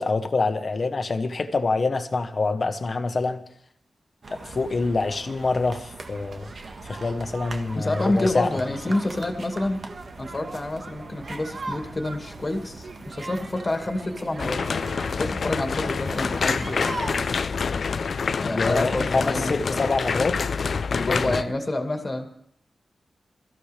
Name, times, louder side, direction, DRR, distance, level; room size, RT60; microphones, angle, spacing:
voice 1, 0.0-3.4 4.3-6.5 6.8-8.5 18.5-20.4 20.6-21.4, left 3 dB, 45° left, 8 dB, 1.2 m, -26 dB
sound 1, 4.2-17.2, right 3 dB, 55° right, 1.5 m, -39 dB
voice 2, 7.7-9.8 10.2-14.6 15.2-16.8 18.4-19.8 21.1-22.3, left 2 dB, 30° left, 4 dB, 2.0 m, -28 dB
sound 2, 14.4-21.4, left 5 dB, 65° left, 0.5 m, -27 dB
23.0 x 14.0 x 3.4 m, 0.68 s
wide cardioid pair, 115°, 0 cm